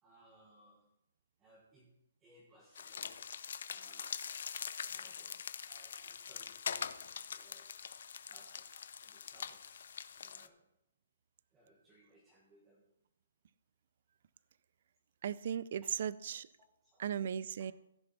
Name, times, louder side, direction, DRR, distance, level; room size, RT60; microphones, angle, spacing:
voice 1, 0.0-0.9 1.4-1.9 2.2-3.4 3.7-4.3 4.9-7.9 8.3-10.7 11.5-12.9 14.3-14.4 16.8-17.7, right 1 dB, 10° right, -3 dB, 1.5 m, -65 dB
sound 1, 2.8-10.5, left 7 dB, 55° left, 0.6 m, -43 dB
voice 2, 15.2-16.5 17.0-17.7, right 8 dB, 45° right, 19 dB, 0.4 m, -37 dB
15.5 x 6.8 x 4.2 m, 0.81 s
hypercardioid pair, 170°, 0 cm